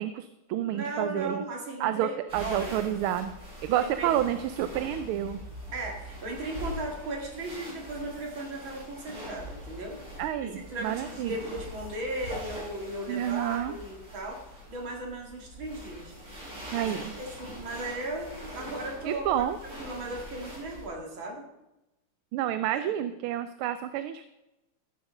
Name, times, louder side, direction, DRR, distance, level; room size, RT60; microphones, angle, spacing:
voice 1, 0.0-1.4 1.8-3.4 3.6-5.4 10.2-11.4 13.1-13.7 16.7-17.1 19.0-19.6 22.3-24.2, right 11 dB, 85° right, 11 dB, 1.5 m, -29 dB
voice 2, 0.6-2.2 2.4-2.8 3.7-4.3 5.7-10.0 10.5-14.4 14.7-16.1 16.7-21.4, right 1 dB, 65° right, 0 dB, 3.0 m, -37 dB
sound 1, 2.3-20.9, equal, 45° right, 5.8 m, -43 dB
15.0 x 7.1 x 5.4 m, 0.96 s
omnidirectional pair, 2.3 m